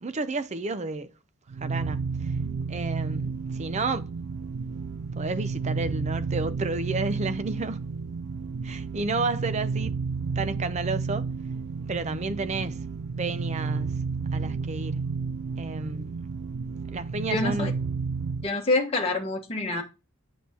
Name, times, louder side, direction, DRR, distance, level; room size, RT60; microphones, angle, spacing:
voice 1, 0.0-1.1 1.6-2.3 2.7-4.1 5.1-7.8 8.6-10.0 10.4-11.3 11.9-12.9 13.2-13.9 14.3-15.1 15.6-16.1 16.9-17.7, right 3 dB, 30° right, 0.5 m, -31 dB
sound 1, 1.5-18.5, right 4 dB, 90° right, 0.5 m, -31 dB
voice 2, 17.3-17.7 18.4-19.8, left 2 dB, 25° left, 1.2 m, -26 dB
8.2 x 6.1 x 2.8 m
head